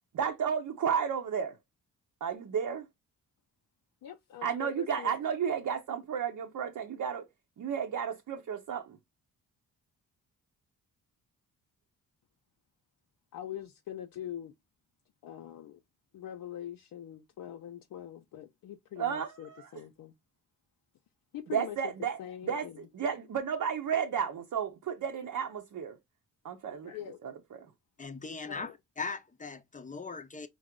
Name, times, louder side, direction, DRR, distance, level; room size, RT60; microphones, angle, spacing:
voice 1, 0.1-1.6 2.2-2.8 4.4-7.3 7.6-9.0 19.0-19.7 21.5-22.2 22.4-26.0 26.4-26.9 27.2-27.7, right 7 dB, 55° right, 0.8 m, -33 dB
voice 2, 4.0-5.1 13.3-14.5 15.2-15.8 16.1-20.1 21.3-21.8 22.2-22.8 26.8-27.2 28.4-28.7, left 10 dB, 65° left, 0.6 m, -43 dB
voice 3, 28.0-30.5, left 4 dB, 20° left, 0.7 m, -39 dB
4.6 x 2.0 x 3.6 m
supercardioid pair, 55°, 36 cm